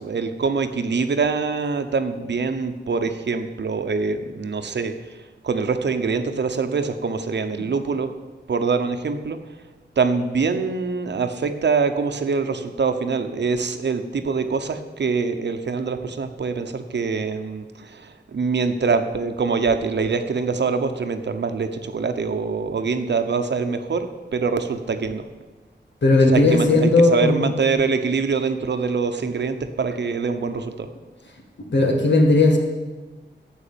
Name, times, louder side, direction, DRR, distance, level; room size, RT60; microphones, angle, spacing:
voice 1, 0.0-4.9 5.4-8.1 8.5-9.4 10.0-25.2 26.3-30.9, right 4 dB, 70° right, 8 dB, 0.9 m, -24 dB
voice 2, 26.0-27.5 31.7-32.6, left 2 dB, 75° left, 2 dB, 2.0 m, -16 dB
11.5 x 8.1 x 7.0 m, 1.2 s
wide cardioid pair, 130°, 19 cm